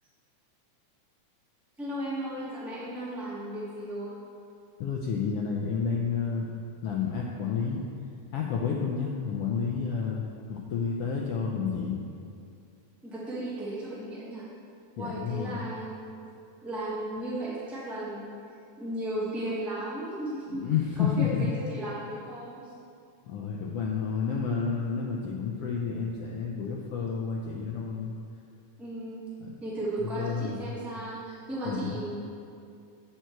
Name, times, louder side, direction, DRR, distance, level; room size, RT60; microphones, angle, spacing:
voice 1, 1.8-4.1 13.0-14.5 15.0-16.1 16.6-18.3 18.8-20.6 21.0-22.7 28.8-29.2 29.6-32.1, right 1 dB, ahead, -9 dB, 0.7 m, -35 dB
voice 2, 4.8-6.5 6.8-7.8 8.3-12.0 15.0-15.7 20.5-21.5 23.3-28.1 29.4-29.5 30.0-30.7 31.6-32.0, left 6 dB, 85° left, -2 dB, 1.3 m, -30 dB
9.1 x 8.0 x 4.5 m, 2.5 s
omnidirectional pair, 3.5 m